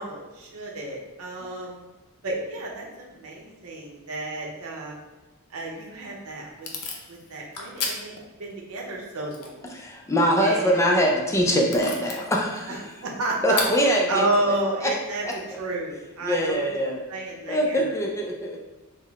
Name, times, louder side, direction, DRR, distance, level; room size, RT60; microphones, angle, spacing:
voice 1, 0.0-1.8 2.2-4.9 5.5-6.7 7.1-8.1 8.4-9.6 10.4-10.8 12.7-13.7 14.1-15.2 15.5-16.7 17.1-17.9, right 2 dB, 70° right, -2 dB, 0.7 m, -31 dB
Packing tape duct tape / Tearing, 5.7-16.5, left 4 dB, 80° left, 0.6 m, -39 dB
voice 2, 9.7-12.9 13.4-14.9 15.2-15.4 16.2-17.0 17.5-18.6, equal, 15° left, -1 dB, 0.3 m, -23 dB
3.6 x 2.1 x 3.4 m, 1.1 s
head